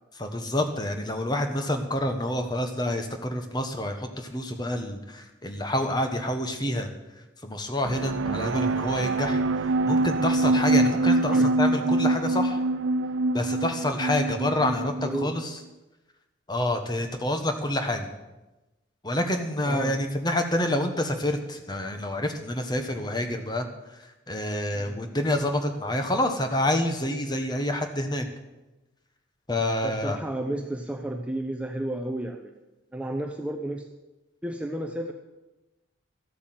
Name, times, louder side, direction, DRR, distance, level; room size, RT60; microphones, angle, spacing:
voice 1, 0.2-6.9 7.4-9.4 9.9-12.6 13.3-15.5 16.5-18.1 19.0-23.6 24.3-28.3 29.5-30.2, left 1 dB, 20° left, 6 dB, 1.3 m, -28 dB
sound 1, 7.8-15.4, right 2 dB, 80° right, 0.5 m, -25 dB
voice 2, 15.0-15.3 19.7-20.0 24.7-25.0 29.8-32.5 32.9-33.8 34.4-35.1, right 1 dB, 5° right, 3 dB, 0.7 m, -32 dB
13.5 x 8.5 x 7.7 m, 1.0 s
head